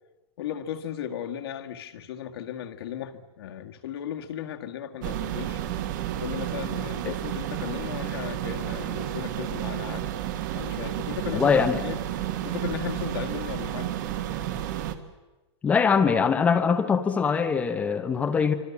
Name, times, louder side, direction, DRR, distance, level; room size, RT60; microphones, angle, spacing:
voice 1, 0.4-5.6 6.2-10.0 10.5-11.6 11.8-12.0 12.4-13.9, left 10 dB, 60° left, 4 dB, 1.9 m, -36 dB
sound 1, 5.0-15.0, right 11 dB, 45° right, 1.8 m, -31 dB
voice 2, 11.3-11.8 15.6-18.5, left 6 dB, 10° left, 8 dB, 0.8 m, -22 dB
27.5 x 25.5 x 7.2 m, 1.1 s
supercardioid pair, 175°, 15 cm